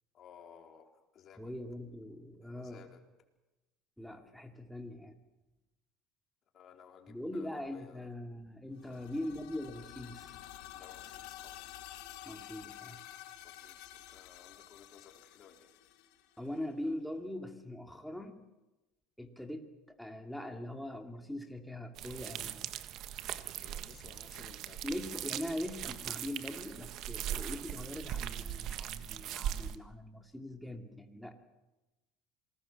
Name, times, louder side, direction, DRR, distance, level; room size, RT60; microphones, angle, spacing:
voice 1, 0.1-1.5 2.4-3.0 6.5-8.1 8.8-9.1 10.7-11.6 13.4-15.7 23.6-24.8, left 7 dB, 45° left, 4 dB, 4.1 m, -57 dB
voice 2, 1.4-2.8 4.0-5.2 7.1-10.4 12.3-13.0 16.4-18.4 19.2-22.7 24.8-31.3, left 1 dB, ahead, 4 dB, 2.7 m, -42 dB
sound 1, 8.7-16.6, left 13 dB, 75° left, 2.7 m, -50 dB
sound 2, 22.0-29.8, right 11 dB, 55° right, 1.5 m, -40 dB
27.0 x 20.0 x 7.3 m, 1.0 s
supercardioid pair, 115°, 0 cm